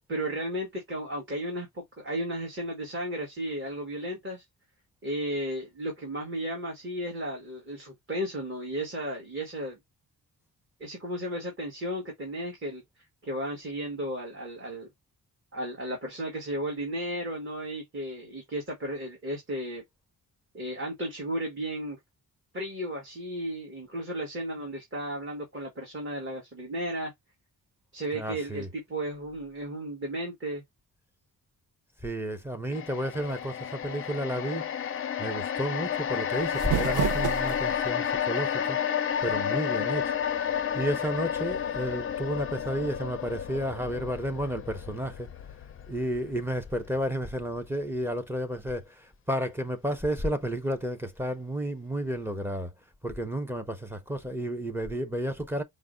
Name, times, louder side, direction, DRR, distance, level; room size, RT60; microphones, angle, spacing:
voice 1, 0.1-4.4 5.0-9.8 10.8-12.8 13.2-14.9 15.5-19.8 20.5-22.0 22.5-27.1 27.9-30.6, right 1 dB, 35° right, 1.5 m, -34 dB
voice 2, 28.1-28.7 32.0-34.7 35.2-38.8 39.2-40.2 40.7-45.3 45.9-52.7 53.0-55.6, equal, 5° right, 0.6 m, -32 dB
sound 1, 32.7-47.1 47.4-47.6, left 8 dB, 35° left, 0.4 m, -31 dB
sound 2, 36.3-37.9, right 8 dB, 55° right, 0.6 m, -30 dB
4.7 x 2.2 x 3.7 m
wide cardioid pair, 150°, 37 cm